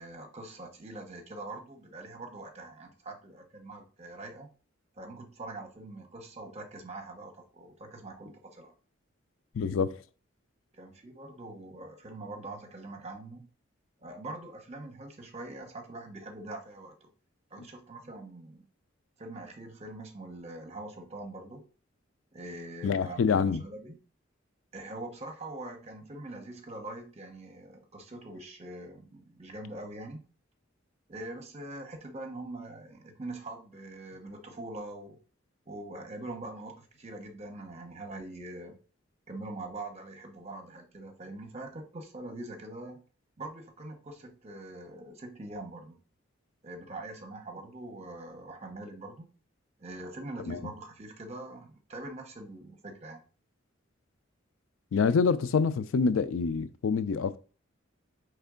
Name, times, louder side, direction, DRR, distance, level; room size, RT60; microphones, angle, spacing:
voice 1, 0.0-4.5 5.0-8.7 10.7-13.5 14.0-17.1 17.5-18.7 19.2-21.6 22.3-24.0 24.7-30.2 31.1-35.2 35.7-38.8 39.3-43.0 43.4-46.0 46.6-49.3 49.8-53.2, right 2 dB, 35° right, 0.9 m, -43 dB
voice 2, 9.5-10.0 22.8-23.6 50.5-50.6 54.9-57.4, left 5 dB, 80° left, 0.4 m, -26 dB
4.4 x 3.3 x 3.7 m
head